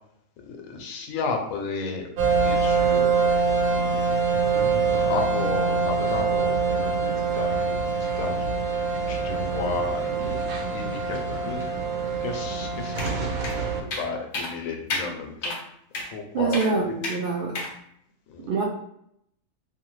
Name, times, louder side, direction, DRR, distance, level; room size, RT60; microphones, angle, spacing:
voice 1, 0.5-3.3 3.7-4.0 4.9-8.5 9.1-10.4 10.7-11.6 12.2-15.6 16.1-16.6 16.8-17.0 18.3-18.5, left 4 dB, 80° left, 3 dB, 1.0 m, -33 dB
sound 1, 2.2-13.8, right 4 dB, 85° right, 1.0 m, -24 dB
sound 2, 13.0-13.1 13.4-13.5 13.9-14.1 14.3-14.5 14.9-15.1 15.4-15.6 15.9-16.1 16.5-16.7 17.0-17.2 17.5-17.7, left 2 dB, 60° left, 0.6 m, -30 dB
voice 2, 16.3-17.7 18.5-18.6, right 4 dB, 65° right, -5 dB, 0.5 m, -25 dB
2.6 x 2.3 x 3.0 m, 0.73 s
omnidirectional pair, 1.4 m